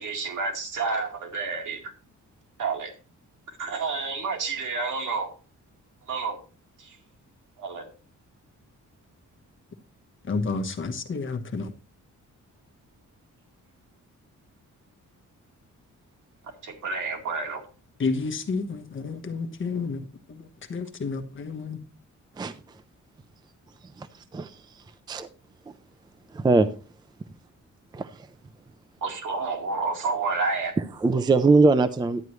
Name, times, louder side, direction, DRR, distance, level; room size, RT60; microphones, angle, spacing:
voice 1, 0.0-1.8 2.6-2.9 3.6-5.3 6.1-6.4 7.6-7.9 16.6-17.6 29.0-30.7, right 4 dB, 85° right, 3 dB, 2.3 m, -29 dB
voice 2, 10.3-11.7 18.0-20.0 20.7-21.8, left 4 dB, 40° left, 5 dB, 1.2 m, -30 dB
voice 3, 26.3-26.7 27.9-28.3 31.0-32.2, right 3 dB, 15° right, 11 dB, 0.4 m, -21 dB
11.0 x 9.4 x 3.1 m, 0.35 s
wide cardioid pair, 170°, 30 cm